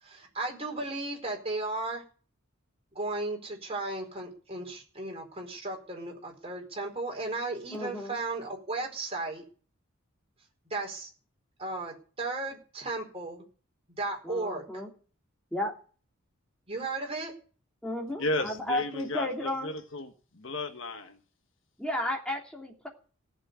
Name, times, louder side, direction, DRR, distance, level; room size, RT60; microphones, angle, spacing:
voice 1, 0.0-2.0 2.9-9.4 10.7-11.1 11.6-13.4 14.0-14.6 16.7-17.3, right 2 dB, 25° right, 4.7 m, -35 dB
voice 2, 7.7-8.2 14.2-14.9 15.5-15.7 17.8-19.7 21.8-22.9, left 1 dB, 5° left, 3.0 m, -33 dB
voice 3, 18.2-21.2, left 2 dB, 60° left, 1.6 m, -34 dB
17.0 x 7.7 x 9.5 m
head